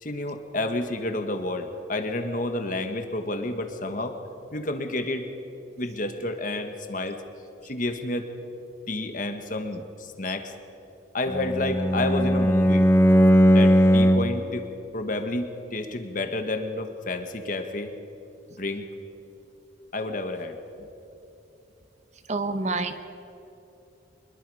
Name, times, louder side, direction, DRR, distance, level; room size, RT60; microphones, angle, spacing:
voice 1, 0.0-4.2 4.5-5.3 5.8-7.2 7.6-8.3 8.9-10.5 11.1-12.9 13.5-14.7 14.9-17.9 18.6-18.9 19.9-20.9, left 2 dB, 45° left, 6 dB, 1.6 m, -30 dB
Bowed string instrument, 11.3-14.5, equal, 15° left, 0.7 m, -18 dB
voice 2, 22.3-23.0, right 3 dB, 40° right, 10 dB, 0.9 m, -27 dB
25.0 x 22.0 x 5.0 m, 3.0 s
head